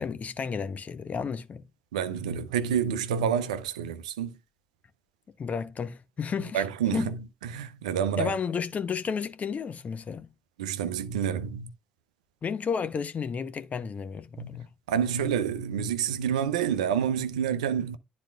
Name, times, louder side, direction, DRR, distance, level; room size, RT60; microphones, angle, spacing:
voice 1, 0.0-1.6 5.4-6.6 6.9-7.1 8.2-10.3 12.4-14.7, left 6 dB, 40° left, 0.8 m, -32 dB
voice 2, 1.9-4.4 6.5-8.3 10.6-11.7 14.4-18.0, right 8 dB, 75° right, 0.6 m, -28 dB
12.0 x 4.3 x 2.4 m
figure-of-eight pair, 40°, 4 cm